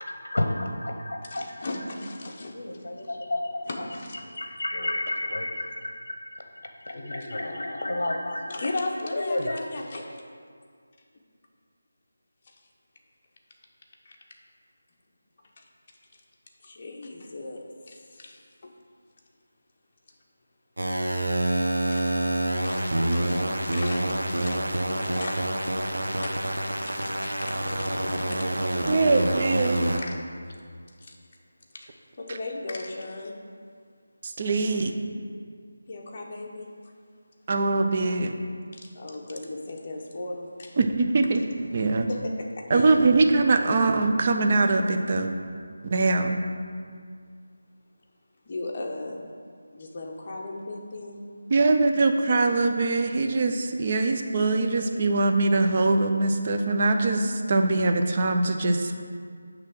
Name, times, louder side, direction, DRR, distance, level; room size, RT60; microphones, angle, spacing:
voice 1, 0.0-1.7 2.5-3.6 4.2-8.7 9.1-9.6, left 1 dB, 60° left, 4 dB, 0.8 m, -31 dB
voice 2, 1.3-2.8 3.7-4.2 8.5-10.0 14.0-14.1 15.6-15.7 16.6-18.7 21.8-22.1 22.6-25.5 25.8-26.3 26.8-27.4 27.7-28.2 30.0-30.2 31.0-31.1 31.7-33.4 35.9-36.7 38.7-40.8 42.1-43.0 48.5-49.3 49.7-51.2, left 2 dB, 30° left, -1 dB, 0.9 m, -37 dB
sound 1, 20.8-30.0, right 1 dB, 90° right, 1.0 m, -27 dB
voice 3, 28.9-29.9 34.2-34.9 37.5-38.3 40.8-41.4 41.7-42.1 42.7-45.3 45.8-46.4 51.5-58.9, right 3 dB, 30° right, 4 dB, 0.4 m, -22 dB
9.6 x 3.3 x 6.0 m, 2.1 s
figure-of-eight pair, 175°, 0 cm